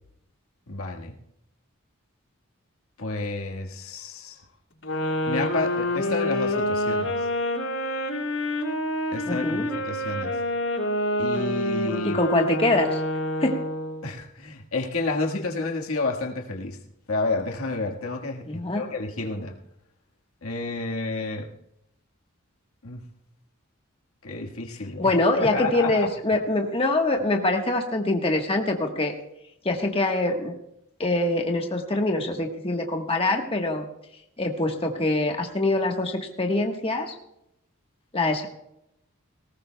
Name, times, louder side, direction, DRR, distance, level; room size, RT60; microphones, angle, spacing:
voice 1, 0.7-1.1 3.0-4.4 5.3-7.3 9.1-10.3 11.2-12.2 14.0-16.8 17.1-19.5 20.4-21.5 22.8-23.0 24.2-26.1, left 3 dB, 85° left, 1 dB, 1.6 m, -30 dB
sound 1, 4.8-14.1, left 1 dB, 65° left, 5.3 m, -27 dB
voice 2, 9.3-9.7 12.0-13.0 13.4-13.6 18.5-18.9 25.0-29.1 29.6-30.5 31.0-33.9 34.4-37.1 38.1-38.5, left 2 dB, 25° left, 3 dB, 1.3 m, -24 dB
19.5 x 18.0 x 2.2 m, 0.81 s
head